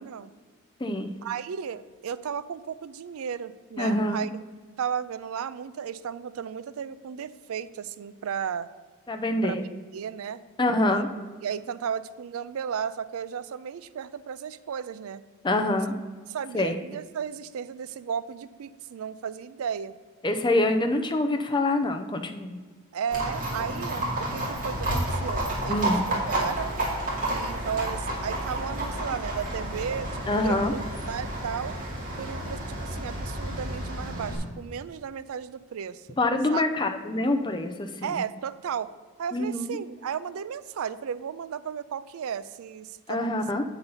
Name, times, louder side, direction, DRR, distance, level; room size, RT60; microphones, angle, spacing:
voice 1, 0.0-0.3 1.2-4.3 4.8-8.7 9.4-9.6 9.9-10.4 10.9-11.0 11.4-15.2 16.3-19.9 22.9-26.8 27.2-30.7 31.1-31.7 32.2-36.1 36.5-36.6 38.0-38.9 39.2-43.4, right 7 dB, 70° right, 15 dB, 0.4 m, -34 dB
voice 2, 0.8-1.1 3.8-4.2 9.1-9.6 10.6-11.1 15.4-15.9 16.5-16.8 20.2-22.6 25.7-26.0 30.3-30.7 36.2-38.1 39.3-39.8 43.1-43.6, left 2 dB, 20° left, 5 dB, 0.5 m, -25 dB
Livestock farm animals working animals, 23.1-34.4, right 1 dB, 40° right, 2.3 m, -31 dB
8.1 x 3.9 x 5.5 m, 1.5 s
head